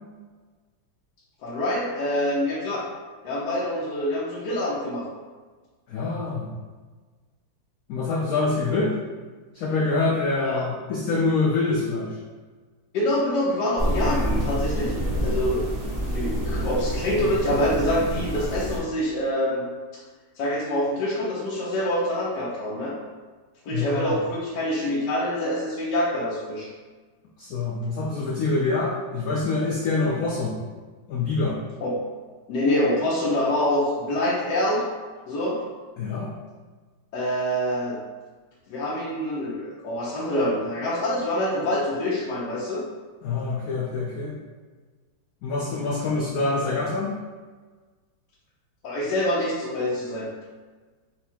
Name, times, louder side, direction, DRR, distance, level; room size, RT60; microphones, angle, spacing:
voice 1, 1.4-2.9 3.2-5.0 10.4-10.7 12.9-14.9 15.2-15.6 16.0-19.6 20.4-22.9 23.6-26.7 31.8-32.0 32.5-34.8 35.3-35.6 37.1-38.0 38.7-42.8 48.8-50.3, left 1 dB, 65° left, -6 dB, 1.3 m, -25 dB
voice 2, 5.9-6.5 7.9-9.0 9.5-12.2 23.7-24.2 27.4-30.6 31.1-31.6 36.0-36.3 43.2-44.4 45.4-47.1, left 3 dB, 85° left, -2 dB, 0.8 m, -25 dB
sound 1, 13.8-18.8, equal, 30° right, 0.6 m, -27 dB
4.5 x 2.3 x 4.3 m, 1.4 s
omnidirectional pair, 2.1 m